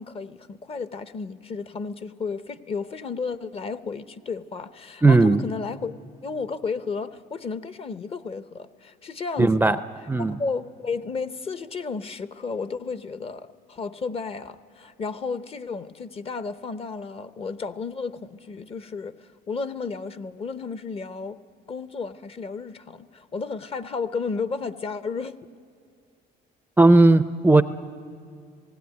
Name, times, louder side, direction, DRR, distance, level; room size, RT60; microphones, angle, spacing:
voice 1, 0.0-5.9 6.2-9.8 10.2-21.4 21.7-25.4, left 4 dB, 35° left, 13 dB, 0.7 m, -33 dB
voice 2, 5.0-5.4 9.4-9.8 10.1-10.4 26.8-27.6, right 2 dB, 10° right, 11 dB, 0.4 m, -16 dB
18.5 x 16.5 x 9.4 m, 2.3 s
cardioid pair, 110°, 17 cm